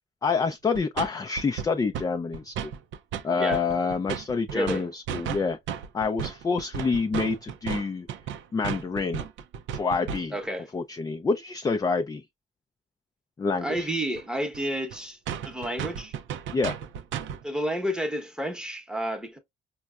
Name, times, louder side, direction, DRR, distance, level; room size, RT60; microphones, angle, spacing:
voice 1, 0.2-2.7 3.2-5.6 5.9-8.1 8.5-9.3 9.7-10.4 10.7-12.2 13.4-13.9 16.5-16.8, left 4 dB, 20° left, 0.3 m, -27 dB
sound 1, 0.7-1.1 1.4-2.1 2.3-3.2 3.5-10.5 13.8-13.9 14.2-14.3 14.5-14.6 14.9-15.0 15.3-17.4, right 8 dB, 75° right, 0.4 m, -34 dB
voice 2, 4.5-4.8 10.3-10.7 13.6-15.2 15.4-16.1 17.4-19.4, equal, 5° right, 0.8 m, -30 dB
4.4 x 2.1 x 2.3 m
cardioid pair, 90°, 20 cm